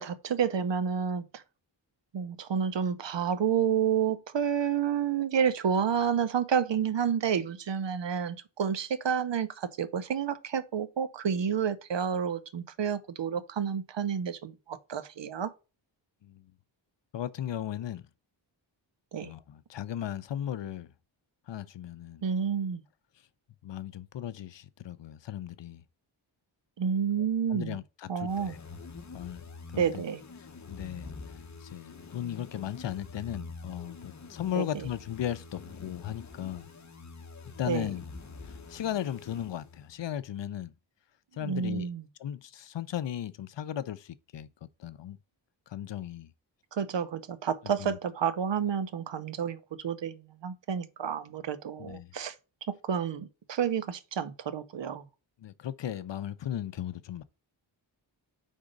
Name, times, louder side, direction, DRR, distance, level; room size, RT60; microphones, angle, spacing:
voice 1, 0.0-1.4 2.1-15.5 19.1-19.3 22.2-22.8 26.8-27.8 28.1-28.6 29.7-30.2 34.5-34.9 37.6-37.9 41.4-42.0 46.7-52.3 52.8-55.0, right 7 dB, 65° right, 0.8 m, -30 dB
voice 2, 17.1-18.0 19.2-20.9 21.5-22.2 23.6-25.8 27.5-28.6 29.1-29.4 29.7-30.0 30.7-31.1 31.6-36.7 37.5-38.0 38.7-40.7 41.3-41.9 42.2-45.2 45.7-46.3 47.8-48.0 51.8-52.1 55.4-57.2, left 11 dB, 65° left, 0.6 m, -36 dB
sound 1, 28.3-40.0, left 4 dB, 35° left, 0.9 m, -46 dB
4.9 x 3.6 x 5.2 m
wide cardioid pair, 90°, 47 cm